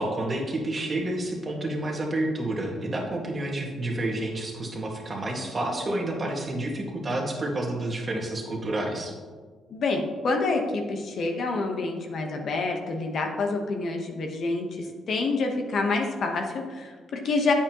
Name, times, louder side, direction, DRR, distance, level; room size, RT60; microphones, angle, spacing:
voice 1, 0.0-9.2, right 1 dB, 30° right, -1 dB, 1.8 m, -29 dB
voice 2, 9.7-17.5, left 3 dB, 60° left, 3 dB, 1.1 m, -27 dB
8.8 x 7.4 x 3.0 m, 1.5 s
cardioid pair, 90°, 0 cm